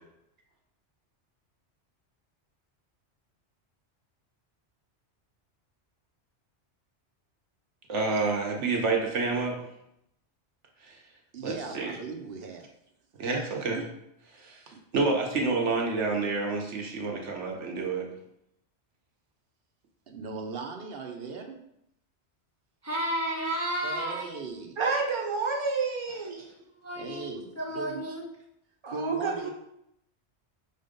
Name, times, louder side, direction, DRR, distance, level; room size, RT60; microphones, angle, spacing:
voice 1, 7.9-9.6 10.8-10.9 11.4-12.0 13.2-13.8 14.3-14.6 14.9-18.1, right 3 dB, 90° right, 0 dB, 1.4 m, -28 dB
voice 2, 11.3-12.7 13.7-13.8 20.1-21.6 23.8-24.8 26.9-28.0 28.9-29.5, right 5 dB, 60° right, 4 dB, 0.9 m, -38 dB
voice 3, 22.8-24.4 26.4-28.2, right 1 dB, 15° left, -1 dB, 0.6 m, -33 dB
voice 4, 24.8-26.4 28.8-29.5, right 4 dB, 30° right, 1 dB, 0.9 m, -29 dB
4.5 x 4.1 x 5.2 m, 0.79 s
omnidirectional pair, 1.2 m